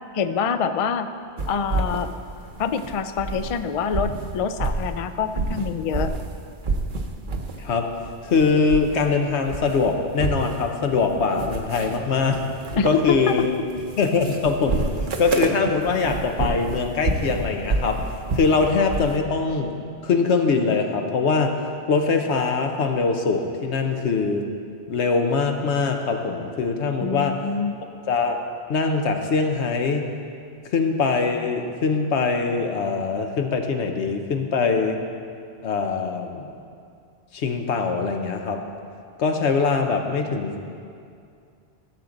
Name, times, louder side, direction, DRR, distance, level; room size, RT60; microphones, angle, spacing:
voice 1, 0.1-1.1 1.5-2.1 2.6-6.1 12.7-13.3 27.0-27.7, left 6 dB, 60° left, 10 dB, 0.3 m, -25 dB
sound 1, 1.4-3.6 3.9-6.3 6.6-7.6 7.9-9.1 9.4-19.2, right 3 dB, 50° right, 0.9 m, -29 dB
voice 2, 7.6-7.9 8.2-12.5 12.8-13.6 14.0-14.9 15.2-18.0 18.3-19.7 20.0-21.6 21.9-24.5 24.9-27.4 28.1-28.4 28.7-30.0 30.7-35.0 35.6-36.5 37.3-38.6 39.2-40.8, left 4 dB, 85° left, 4 dB, 1.1 m, -22 dB
15.0 x 7.2 x 3.9 m, 2.4 s
omnidirectional pair, 1.1 m